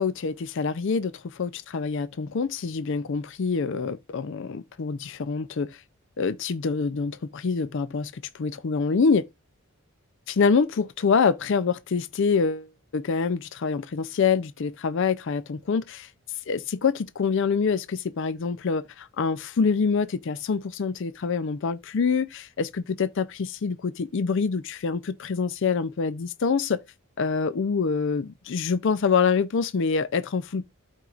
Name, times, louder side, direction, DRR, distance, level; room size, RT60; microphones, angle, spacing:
voice 1, 0.0-5.8 6.2-9.2 10.3-16.1 16.5-26.8 27.2-30.7, left 5 dB, 55° left, 0.4 m, -26 dB
13.0 x 4.5 x 2.4 m
head